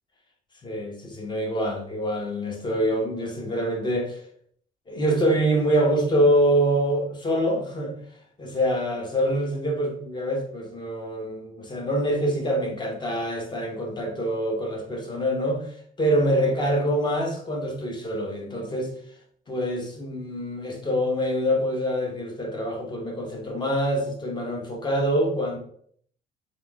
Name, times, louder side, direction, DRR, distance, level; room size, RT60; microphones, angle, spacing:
voice 1, 0.6-4.2 4.9-7.9 8.4-15.7 16.0-18.9 19.5-25.6, equal, 25° left, 1.2 m, -25 dB
3.5 x 3.4 x 3.6 m
cardioid pair, 110°, 17 cm